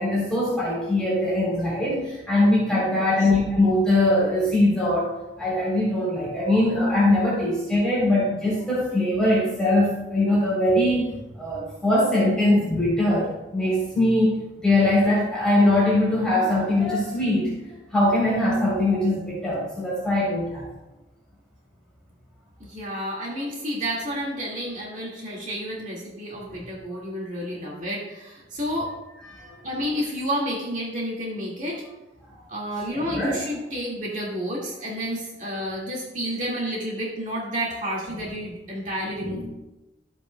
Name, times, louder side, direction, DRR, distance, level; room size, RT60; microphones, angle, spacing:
voice 1, 0.0-5.1 5.4-11.1 11.3-13.3 13.5-14.3 14.6-17.5 17.9-20.6 29.2-29.6 32.9-33.4 39.2-39.4, left 1 dB, 5° left, -7 dB, 3.4 m, -21 dB
voice 2, 2.9-3.3 22.6-28.9 29.6-31.8 32.5-39.5, equal, 45° right, -4 dB, 1.9 m, -30 dB
14.0 x 8.0 x 2.2 m, 1.0 s
head